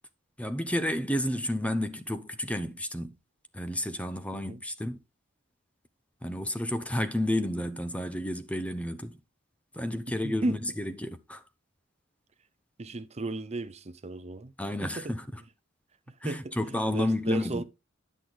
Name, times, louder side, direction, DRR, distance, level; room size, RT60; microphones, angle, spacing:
voice 1, 0.4-3.2 3.5-5.0 6.2-9.2 9.7-11.4 14.6-15.2 16.2-17.6, left 1 dB, 5° left, 0.7 m, -31 dB
voice 2, 10.2-10.6 12.8-14.5 14.8-15.1 16.1-17.6, right 2 dB, 35° right, 0.7 m, -35 dB
10.5 x 6.3 x 3.8 m
head